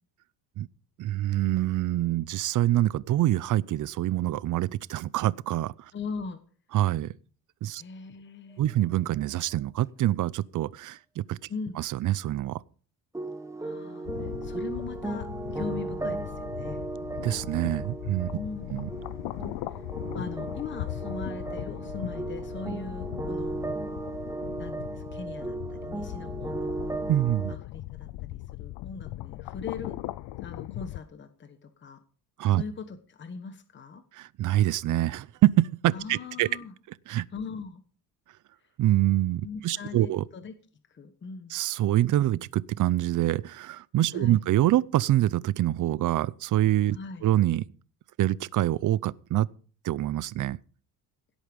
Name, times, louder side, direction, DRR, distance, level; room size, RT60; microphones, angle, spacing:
voice 1, 1.0-5.7 6.7-7.1 7.6-7.8 8.6-11.4 11.8-12.6 17.2-18.3 18.7-18.9 27.1-27.5 32.4-32.6 34.1-36.5 37.1-37.3 38.8-40.2 41.5-47.0 47.2-47.6 48.2-49.5 49.8-50.6, right 14 dB, 50° right, 0.6 m, -25 dB
voice 2, 5.9-6.4 7.7-8.6 11.5-11.8 13.6-16.9 18.3-18.8 19.7-19.8 20.1-23.6 24.6-26.8 27.5-30.0 30.4-32.0 32.5-34.0 35.9-36.7 37.3-37.8 39.4-40.5 40.9-41.6 44.1-44.4 46.9-47.2, left 5 dB, 30° left, 1.2 m, -40 dB
sound 1, 13.1-27.6, right 3 dB, 10° right, 1.0 m, -36 dB
sound 2, 14.0-31.0, left 17 dB, 90° left, 0.7 m, -39 dB
17.0 x 8.3 x 5.3 m
cardioid pair, 135°, 38 cm